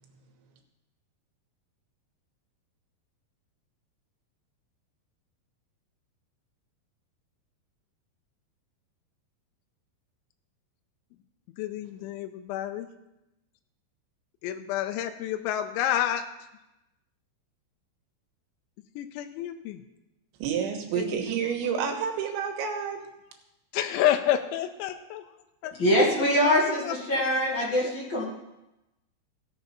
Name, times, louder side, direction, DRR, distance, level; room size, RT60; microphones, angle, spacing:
voice 1, 11.6-12.9 14.4-16.2 19.0-19.8 21.0-21.3 23.7-25.3 25.6-25.7 26.4-26.5 26.8-27.0, left 11 dB, 85° left, 7 dB, 2.9 m, -29 dB
voice 2, 20.4-23.0, right 7 dB, 75° right, 4 dB, 3.5 m, -29 dB
voice 3, 25.8-28.2, equal, 45° left, -4 dB, 1.7 m, -23 dB
16.0 x 6.8 x 5.6 m, 0.95 s
omnidirectional pair, 5.5 m